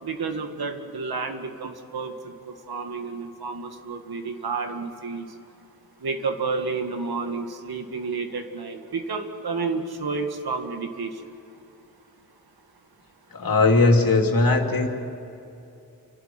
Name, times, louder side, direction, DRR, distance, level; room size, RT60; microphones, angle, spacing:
voice 1, 0.0-5.3 6.0-11.2, right 4 dB, 80° right, 5 dB, 2.1 m, -30 dB
voice 2, 13.3-14.9, left 3 dB, 65° left, 2 dB, 2.9 m, -19 dB
29.5 x 12.5 x 9.5 m, 2.8 s
wide cardioid pair, 135°, 37 cm